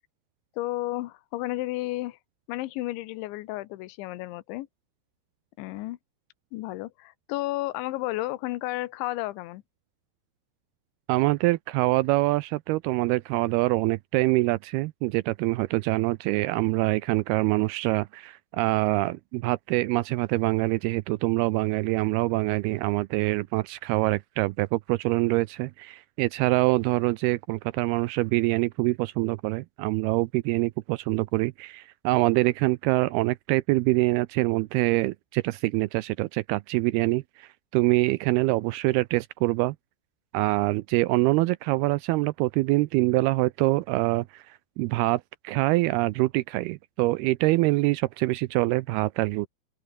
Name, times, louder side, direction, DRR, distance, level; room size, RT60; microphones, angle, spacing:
voice 1, 0.6-2.2 2.5-4.7 5.6-6.0 6.5-9.6, left 18 dB, 85° left, 3.3 m, -32 dB
voice 2, 11.1-39.8 40.3-49.5, right 20 dB, 85° right, 2.2 m, -25 dB
open air
omnidirectional pair, 5.2 m